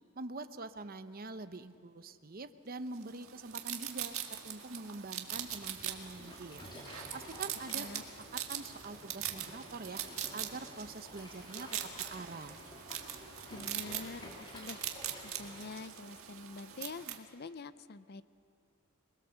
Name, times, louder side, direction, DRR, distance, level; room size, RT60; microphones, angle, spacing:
voice 1, 0.2-6.7 7.1-7.9 8.3-10.0 10.3-11.7 12.0-12.6, right 3 dB, 40° right, 10 dB, 0.8 m, -45 dB
sound 1, 3.0-17.2, right 10 dB, 70° right, 1.8 m, -42 dB
Waves surf, 5.3-15.7, left 1 dB, 20° left, 3.9 m, -51 dB
voice 2, 13.5-14.8 15.2-18.2, left 3 dB, 45° left, 15 dB, 0.5 m, -46 dB
27.5 x 20.5 x 7.0 m, 2.4 s
head